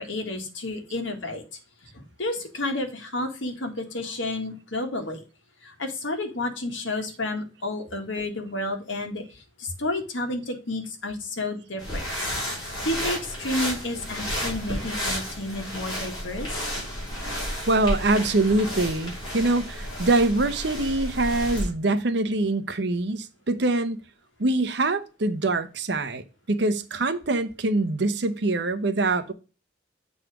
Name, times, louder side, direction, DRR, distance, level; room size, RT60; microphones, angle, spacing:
voice 1, 0.0-1.4 1.9-5.2 5.6-12.3 12.8-16.7, left 2 dB, 75° left, 1.7 m, -31 dB
sound 1, 11.8-21.7, equal, 20° left, 4.8 m, -32 dB
voice 2, 17.7-24.0 24.4-29.3, right 2 dB, 60° right, 0.8 m, -24 dB
8.0 x 4.1 x 4.8 m
head